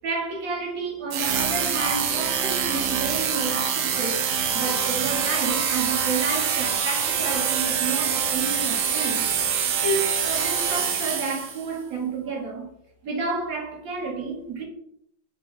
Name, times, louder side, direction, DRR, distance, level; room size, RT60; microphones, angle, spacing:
voice 1, 0.0-4.2 4.5-9.3 9.8-12.7 13.0-14.6, right 3 dB, 55° right, 1.3 m, -30 dB
sound 1, 1.1-11.7, right 7 dB, 85° right, 1.3 m, -25 dB
5.8 x 2.2 x 3.2 m
omnidirectional pair, 2.1 m